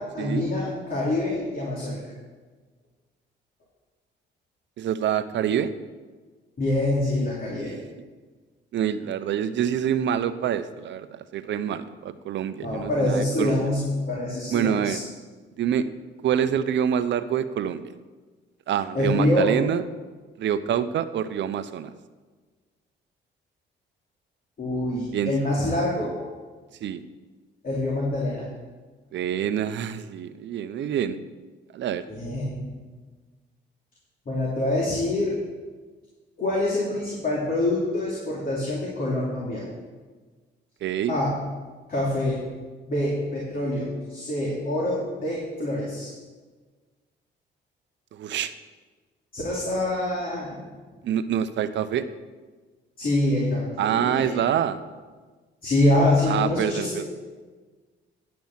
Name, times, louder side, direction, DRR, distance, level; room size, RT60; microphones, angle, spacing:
voice 1, 0.0-2.1 6.6-7.7 12.6-15.0 18.9-19.5 24.6-26.2 27.6-28.4 32.1-32.7 34.3-35.3 36.4-39.6 41.1-41.3 41.9-42.4 42.9-46.1 49.3-50.7 53.0-54.4 55.6-57.0, left 1 dB, 45° left, -5 dB, 3.0 m, -25 dB
voice 2, 4.8-5.7 7.6-7.8 8.7-13.6 14.5-15.0 15.6-15.9 16.2-17.8 18.7-19.8 20.4-21.9 25.1-25.3 26.8-27.0 29.1-31.2 31.7-32.0 40.8-41.1 48.1-48.5 51.0-52.1 53.8-54.8 56.3-57.1, right 9 dB, 65° right, 12 dB, 0.7 m, -26 dB
10.5 x 6.1 x 7.3 m, 1.4 s
cardioid pair, 90°, 20 cm